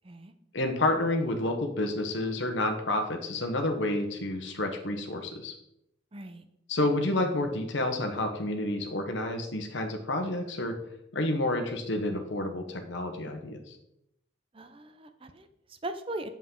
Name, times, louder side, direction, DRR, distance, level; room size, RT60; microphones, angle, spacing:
voice 1, 0.5-5.5 6.7-10.7 11.1-13.8, left 1 dB, 65° left, 4 dB, 1.0 m, -29 dB
voice 2, 6.1-6.5 14.5-16.3, right 1 dB, 30° right, 9 dB, 0.6 m, -39 dB
8.2 x 7.2 x 3.8 m, 0.79 s
head